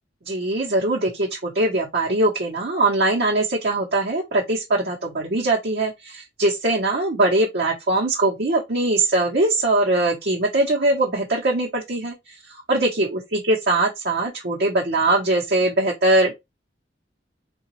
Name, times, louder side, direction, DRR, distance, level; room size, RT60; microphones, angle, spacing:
voice 1, 0.2-16.3, right 2 dB, 60° right, 0.8 m, -21 dB
3.8 x 2.3 x 2.9 m
head